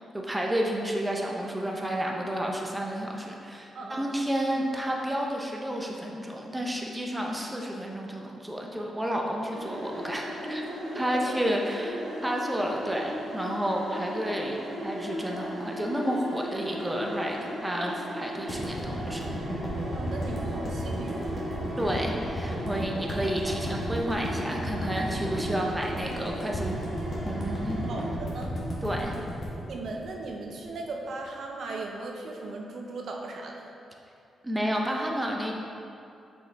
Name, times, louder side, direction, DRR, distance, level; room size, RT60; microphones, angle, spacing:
voice 1, 0.1-10.6 10.9-19.3 21.8-26.8 27.2-27.8 28.8-29.1 34.4-35.5, equal, 10° right, 0 dB, 0.7 m, -31 dB
voice 2, 3.7-4.1 10.9-11.4 13.9-14.0 19.8-21.4 27.9-28.6 29.6-33.7, right 3 dB, 65° right, 1 dB, 0.7 m, -38 dB
sound 1, 9.6-28.1, equal, 50° right, 1.5 m, -37 dB
sound 2, 18.5-30.7, equal, 50° left, 1.3 m, -34 dB
6.2 x 5.3 x 3.4 m, 2.6 s
cardioid pair, 90°, 0 cm